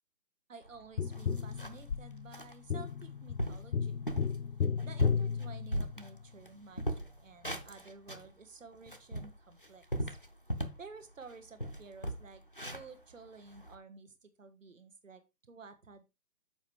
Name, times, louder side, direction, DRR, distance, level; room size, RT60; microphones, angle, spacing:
voice 1, 0.5-4.0 4.8-10.2 10.8-12.4 12.7-16.0, right 4 dB, 55° right, 7 dB, 1.4 m, -52 dB
sound 1, 0.7-0.8 1.1-1.9 2.3-2.5 3.0-3.1 3.4-3.7 4.1-4.4 4.8-6.5 6.8-8.3 8.7-10.9 11.2-11.3 11.6-13.8, equal, 35° left, 0.5 m, -38 dB
Tap, 1.0-6.3 8.9-9.0, left 6 dB, 80° left, 0.9 m, -34 dB
7.1 x 5.5 x 4.7 m, 0.25 s
hypercardioid pair, 180°, 47 cm